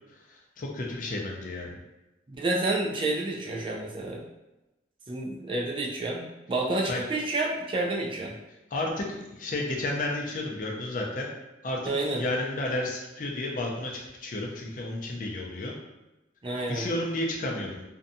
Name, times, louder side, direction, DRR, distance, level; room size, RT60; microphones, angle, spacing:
voice 1, 0.3-1.8 6.9-7.1 8.7-11.3 11.6-15.7 16.7-17.8, left 2 dB, 45° left, -1 dB, 0.4 m, -32 dB
voice 2, 2.3-4.2 5.1-8.3 11.9-12.2 16.4-16.9, right 2 dB, 25° right, -1 dB, 0.4 m, -29 dB
2.6 x 2.2 x 2.6 m, 1.0 s
head